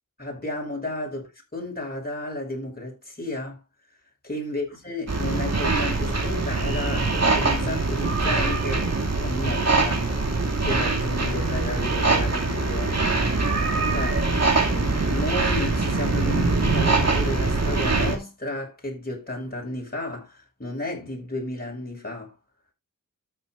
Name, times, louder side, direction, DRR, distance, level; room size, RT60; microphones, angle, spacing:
voice 1, 0.2-1.2 1.5-3.6 4.2-8.9 9.2-10.1 10.6-13.0 13.9-14.3 14.7-22.3, left 2 dB, 25° left, 5.4 m, -32 dB
sound 1, 5.1-18.2, right 3 dB, 50° right, 2.3 m, -23 dB
13.0 x 8.4 x 2.5 m
cardioid pair, 50°, 34 cm